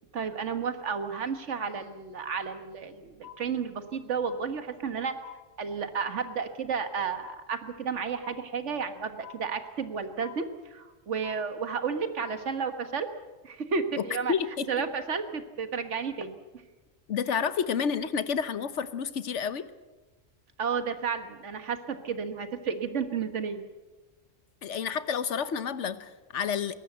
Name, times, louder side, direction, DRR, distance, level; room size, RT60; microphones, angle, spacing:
voice 1, 0.1-5.1 5.6-13.1 13.4-14.3 14.7-16.4 20.6-23.6, right 6 dB, 70° right, 9 dB, 1.7 m, -32 dB
sound 1, 3.2-3.9 4.2-5.0 5.2-6.0 6.2-7.0 7.2-8.0 8.2-9.0 9.2-10.0 10.2-11.0 11.2-12.0 12.2-13.0, left 12 dB, 30° left, 2.5 m, -49 dB
voice 2, 14.3-14.7 17.1-19.7 24.6-26.8, left 7 dB, 70° left, 14 dB, 1.3 m, -30 dB
21.5 x 18.5 x 8.0 m, 1.2 s
omnidirectional pair, 1.3 m